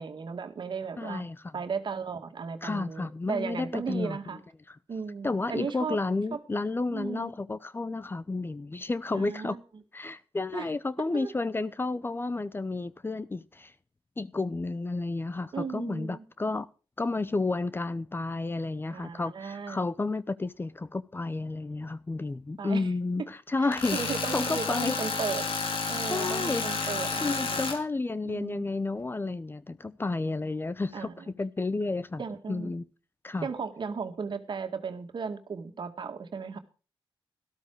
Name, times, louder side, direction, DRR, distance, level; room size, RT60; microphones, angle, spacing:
voice 1, 0.0-1.3 1.5-4.4 4.9-6.0 6.3-6.4 6.9-7.3 9.1-9.6 10.5-10.7 11.1-11.3 15.5-16.2 18.9-19.8 22.6-22.9 23.6-25.5 25.9-27.6 28.2-28.6 30.9-31.3 32.2-32.7 33.4-36.6, right 5 dB, 55° right, 2.0 m, -35 dB
voice 2, 1.0-1.4 2.6-4.2 4.7-4.8 5.2-9.6 9.9-13.7 14.2-16.7 17.0-25.0 26.1-26.9 27.2-32.2 32.5-32.9 33.2-33.5, left 3 dB, 25° left, 0.7 m, -31 dB
Tools, 23.7-27.8, left 4 dB, 70° left, 3.3 m, -31 dB
13.0 x 13.0 x 4.7 m
cardioid pair, 85°, 9 cm